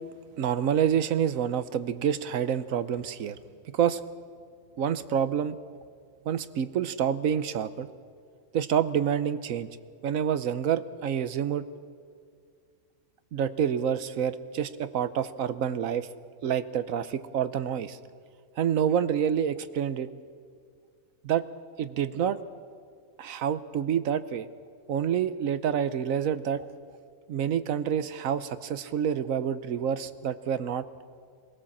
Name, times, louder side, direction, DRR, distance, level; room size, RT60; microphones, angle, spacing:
voice 1, 0.4-3.4 3.7-4.0 4.8-5.6 6.3-7.9 8.5-9.7 10.0-11.7 13.3-16.1 16.4-18.0 18.6-20.1 21.2-21.4 21.8-22.4 23.2-24.5 24.9-26.6 27.3-30.9, right 8 dB, 75° right, 13 dB, 1.2 m, -27 dB
23.0 x 17.0 x 7.3 m, 2.1 s
omnidirectional pair, 1.5 m